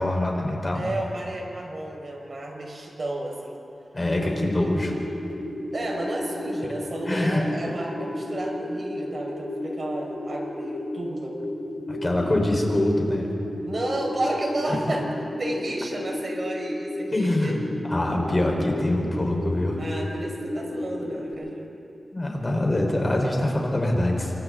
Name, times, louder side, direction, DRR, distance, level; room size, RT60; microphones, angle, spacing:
voice 1, 0.0-0.9 3.9-4.9 7.1-7.7 11.9-13.3 17.1-17.6 17.8-19.8 22.1-24.3, left 1 dB, 30° left, 0 dB, 4.4 m, -24 dB
voice 2, 0.7-3.6 5.7-11.4 13.6-15.1 15.4-17.6 19.8-21.7, right 1 dB, 50° right, -1 dB, 5.2 m, -32 dB
sound 1, 4.0-21.3, left 1 dB, 90° left, 7.2 m, -33 dB
28.0 x 25.0 x 3.9 m, 2.7 s
wide cardioid pair, 75°, 0 cm